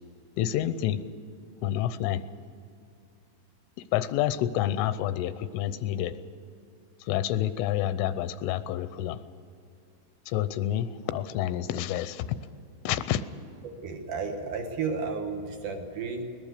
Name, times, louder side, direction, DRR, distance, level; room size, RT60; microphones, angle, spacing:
voice 1, 0.4-1.0 1.6-2.2 3.9-6.2 7.0-9.2 10.3-12.3 12.8-13.2, left 12 dB, 85° left, 13 dB, 3.2 m, -28 dB
voice 2, 13.8-16.3, right 4 dB, 60° right, 4 dB, 2.2 m, -32 dB
22.0 x 19.5 x 6.7 m, 2.5 s
omnidirectional pair, 5.6 m